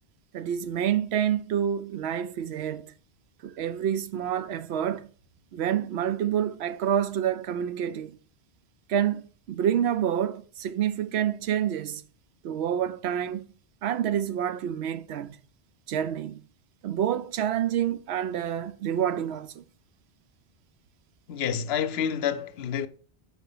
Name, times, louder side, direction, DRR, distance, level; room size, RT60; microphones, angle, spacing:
voice 1, 0.3-2.9 3.4-5.1 5.5-8.1 8.9-12.0 12.4-13.4 13.8-15.4 15.9-16.4 16.8-19.6, right 9 dB, 85° right, 0.8 m, -28 dB
voice 2, 21.3-22.9, left 8 dB, 80° left, 0.8 m, -28 dB
5.7 x 4.4 x 5.4 m
omnidirectional pair, 1.0 m